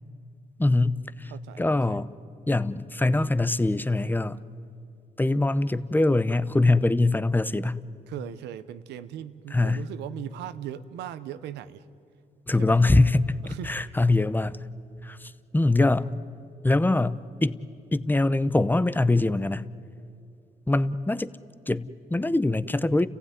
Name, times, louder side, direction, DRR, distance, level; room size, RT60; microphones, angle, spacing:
voice 1, 0.6-1.3 1.6-2.1 2.5-4.4 5.2-7.8 9.5-9.8 12.5-14.6 15.0-16.1 16.6-17.6 17.9-19.6 20.7-21.3 21.7-23.1, left 2 dB, 10° left, 15 dB, 0.8 m, -23 dB
voice 2, 1.3-2.0 8.1-11.8 12.6-12.8 13.4-14.0, right 10 dB, 90° right, 13 dB, 0.9 m, -39 dB
30.0 x 15.5 x 9.5 m, 2.5 s
supercardioid pair, 65°, 17 cm